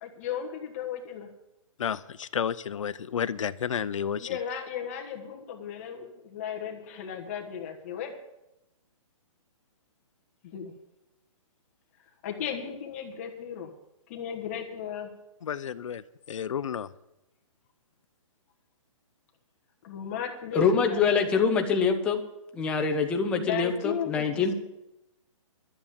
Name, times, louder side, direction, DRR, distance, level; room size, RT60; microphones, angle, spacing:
voice 1, 0.0-1.3 4.2-8.1 10.4-10.7 12.2-13.7 14.1-15.1 19.8-21.0 23.4-24.5, left 8 dB, 25° left, 3 dB, 1.3 m, -35 dB
voice 2, 1.8-4.4 15.4-16.0 16.3-16.9, left 8 dB, 70° left, 16 dB, 0.6 m, -31 dB
voice 3, 20.5-22.2 22.5-24.5, left 5 dB, 5° left, 4 dB, 0.5 m, -25 dB
12.5 x 7.2 x 8.8 m, 0.91 s
hypercardioid pair, 170°, 17 cm